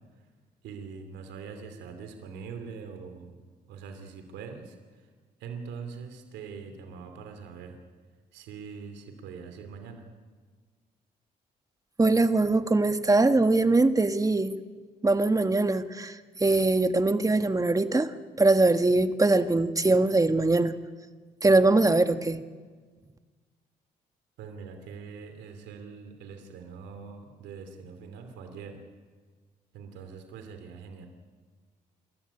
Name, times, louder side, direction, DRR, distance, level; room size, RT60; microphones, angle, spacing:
voice 1, 0.6-3.3 3.7-4.8 5.4-7.8 8.3-10.0 24.4-28.8 29.7-31.1, right 5 dB, 85° right, 6 dB, 2.8 m, -43 dB
voice 2, 12.0-14.6 15.0-18.1 18.4-20.7 21.4-22.4, right 2 dB, 20° right, 9 dB, 1.5 m, -22 dB
28.0 x 13.5 x 10.0 m, 1.5 s
supercardioid pair, 70°, 18 cm